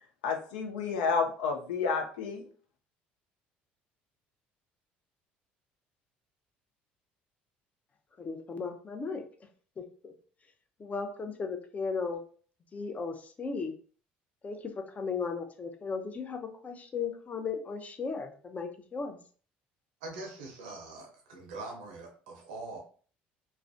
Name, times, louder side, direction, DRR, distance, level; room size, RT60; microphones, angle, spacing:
voice 1, 0.2-2.5, left 5 dB, 85° left, 4 dB, 0.5 m, -30 dB
voice 2, 8.2-9.2 9.8-10.1 10.8-12.2 12.7-13.7 14.4-19.2, left 5 dB, 35° left, 6 dB, 0.5 m, -36 dB
voice 3, 20.0-22.8, right 3 dB, 85° right, 1 dB, 0.6 m, -43 dB
2.4 x 2.1 x 2.5 m, 0.43 s
supercardioid pair, 75°, 5 cm